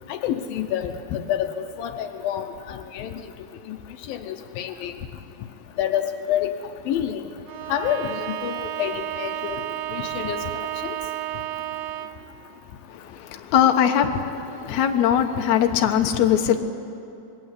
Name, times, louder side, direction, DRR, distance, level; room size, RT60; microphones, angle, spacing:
voice 1, 0.1-1.5 1.8-3.1 3.7-3.8 4.1-4.9 5.8-6.5 6.9-7.2 7.7-9.6 9.9-10.4 10.8-11.0, left 10 dB, 80° left, 6 dB, 2.6 m, -28 dB
Bowed string instrument, 7.5-12.3, right 12 dB, 75° right, 2.5 m, -32 dB
voice 2, 13.3-14.1 14.6-16.6, left 9 dB, 60° left, 4 dB, 2.3 m, -20 dB
26.0 x 21.5 x 8.3 m, 2.8 s
omnidirectional pair, 4.2 m